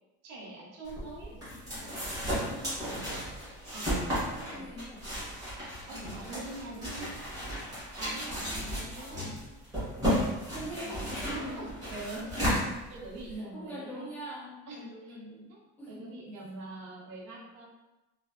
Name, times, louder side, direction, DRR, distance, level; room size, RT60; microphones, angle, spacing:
voice 1, 0.2-1.4 2.4-2.7 3.7-4.1 4.5-4.7 5.9-7.1 8.0-8.6 9.0-9.4 10.8-10.9 11.3-12.3 12.9-14.1 14.7-15.2 15.5-15.6 15.9-17.7, right 2 dB, 60° right, -3 dB, 0.8 m, -44 dB
sound 1, 0.8-13.3, equal, 10° right, 0.9 m, -34 dB
voice 2, 1.0-1.4 2.4-3.3 4.3-5.0 5.9-6.4 8.2-9.4 10.5-11.7 12.3-12.8 13.3-15.5 15.8-16.1, equal, 5° left, -6 dB, 0.3 m, -43 dB
2.5 x 2.3 x 2.2 m, 1.1 s
cardioid pair, 170°, 29 cm